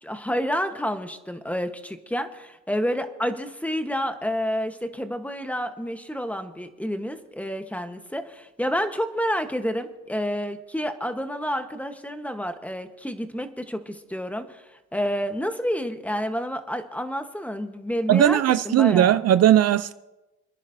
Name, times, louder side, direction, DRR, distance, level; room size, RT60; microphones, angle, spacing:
voice 1, 0.0-19.2, equal, 5° left, 1.1 m, -29 dB
voice 2, 18.1-19.9, right 11 dB, 55° right, 0.5 m, -18 dB
27.5 x 10.5 x 2.7 m
cardioid pair, 90°, 30 cm